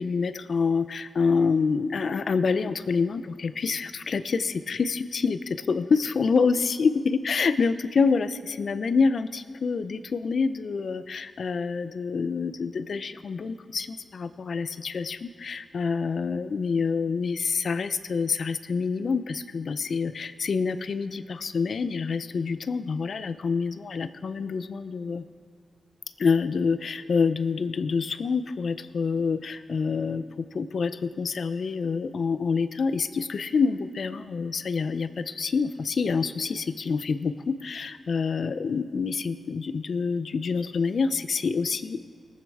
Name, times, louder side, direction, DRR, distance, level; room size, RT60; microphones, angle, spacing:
voice 1, 0.0-25.2 26.2-42.0, left 5 dB, 70° left, 13 dB, 0.5 m, -27 dB
19.0 x 8.7 x 3.6 m, 2.1 s
supercardioid pair, 45°, 0 cm